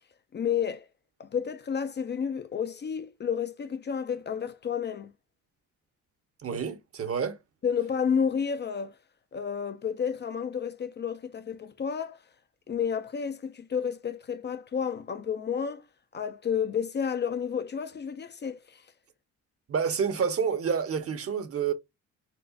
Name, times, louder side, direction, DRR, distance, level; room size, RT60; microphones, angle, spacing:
voice 1, 0.3-0.9 1.2-5.1 7.6-9.0 9.3-12.2 12.7-15.8 16.1-18.8, left 7 dB, 35° left, 0.5 m, -31 dB
voice 2, 6.4-7.4 19.7-21.7, right 6 dB, 50° right, 1.0 m, -28 dB
4.3 x 2.4 x 2.4 m
cardioid pair, 90°, 30 cm